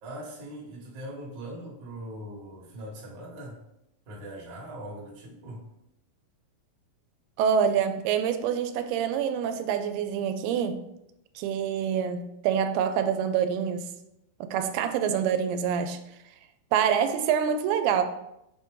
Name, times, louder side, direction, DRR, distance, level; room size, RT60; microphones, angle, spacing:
voice 1, 0.0-3.6 4.0-5.6, right 1 dB, 50° right, -4 dB, 1.4 m, -41 dB
voice 2, 7.4-10.8 11.4-13.9 14.4-16.0 16.7-18.0, right 8 dB, 85° right, 9 dB, 2.5 m, -26 dB
6.9 x 4.0 x 3.7 m, 0.83 s
omnidirectional pair, 4.5 m